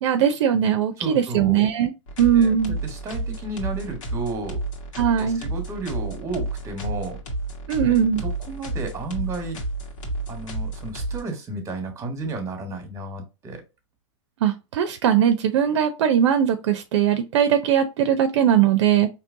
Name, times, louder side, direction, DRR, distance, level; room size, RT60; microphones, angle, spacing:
voice 1, 0.0-1.9 2.2-2.8 5.0-5.4 7.7-8.2 14.4-19.1, right 9 dB, 65° right, 0.6 m, -20 dB
voice 2, 1.0-1.6 2.3-2.5 2.8-4.6 5.2-7.2 7.8-9.6 10.3-13.7, right 3 dB, 20° right, 1.3 m, -32 dB
sound 1, 2.1-11.2, right 2 dB, 85° left, 1.6 m, -31 dB
4.5 x 3.0 x 2.6 m
hypercardioid pair, 130°, 16 cm